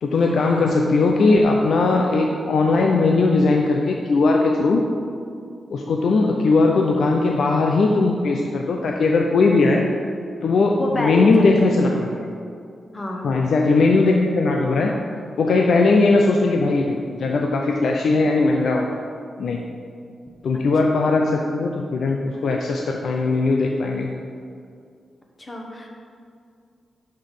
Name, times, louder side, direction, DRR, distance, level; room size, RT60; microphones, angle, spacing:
voice 1, 0.0-4.9 5.7-9.9 10.4-12.3 13.2-15.0 15.4-19.0 19.4-19.6 20.4-24.1, left 3 dB, 65° left, 1 dB, 0.5 m, -19 dB
voice 2, 10.8-11.9 12.9-13.3 25.4-25.9, left 1 dB, 25° left, 1 dB, 1.1 m, -26 dB
5.9 x 5.4 x 6.5 m, 2.3 s
wide cardioid pair, 135°, 0 cm